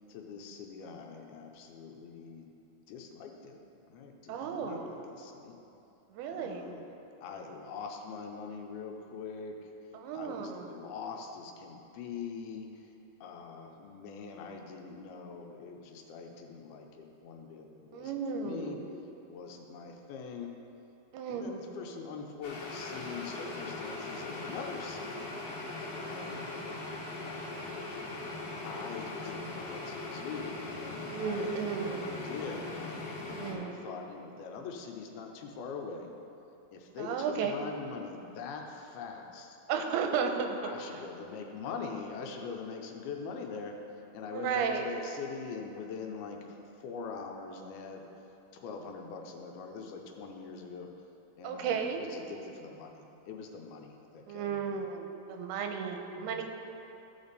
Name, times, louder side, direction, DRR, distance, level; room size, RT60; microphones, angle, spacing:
voice 1, 0.1-2.5 2.9-3.6 3.9-5.6 6.3-6.8 7.2-9.7 10.1-12.9 13.2-18.8 19.3-20.5 21.3-25.3 26.0-26.5 28.6-33.1 33.5-36.1 36.7-39.6 40.6-43.8 44.1-50.9 51.4-54.9 56.1-56.4, left 5 dB, 80° left, 2 dB, 2.5 m, -43 dB
voice 2, 4.3-4.9 6.1-6.6 9.9-10.8 17.9-18.9 21.1-21.6 31.1-32.1 33.3-33.8 37.0-37.5 39.7-40.6 44.3-44.9 51.4-52.0 54.3-56.4, right 6 dB, 90° right, 4 dB, 2.6 m, -34 dB
sound 1, 22.4-33.5, left 2 dB, 60° left, 1.8 m, -40 dB
14.5 x 5.2 x 4.1 m, 2.9 s
omnidirectional pair, 4.6 m